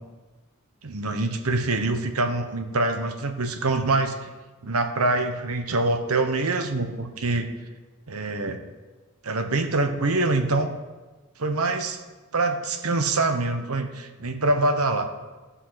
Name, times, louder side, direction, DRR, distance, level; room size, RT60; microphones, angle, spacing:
voice 1, 0.8-4.3 4.6-7.5 8.1-8.6 9.2-10.7 11.4-12.0 12.3-15.1, right 2 dB, 75° right, 6 dB, 1.1 m, -25 dB
16.5 x 5.6 x 5.7 m, 1.2 s
head